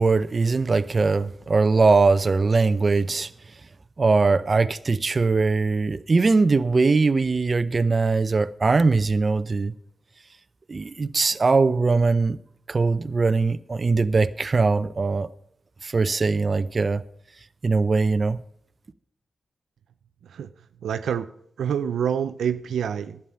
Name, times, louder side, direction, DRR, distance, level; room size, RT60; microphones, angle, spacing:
voice 1, 0.0-3.3 4.0-9.7 10.7-12.4 12.7-15.3 15.8-17.0 17.6-18.4, right 4 dB, 45° right, 0.6 m, -21 dB
voice 2, 20.8-21.3 21.6-23.2, right 8 dB, 85° right, 0.5 m, -26 dB
11.5 x 8.9 x 5.6 m
cardioid pair, 50°, 0 cm